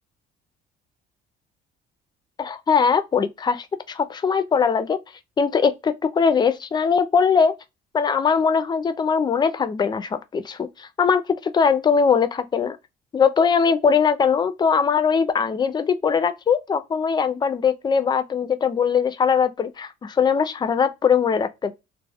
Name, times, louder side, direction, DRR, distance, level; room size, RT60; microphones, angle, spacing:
voice 1, 2.4-5.0 5.4-7.5 7.9-12.8 13.1-21.7, left 6 dB, 25° left, 0.3 m, -21 dB
2.2 x 2.0 x 3.3 m
cardioid pair, 110°, 17 cm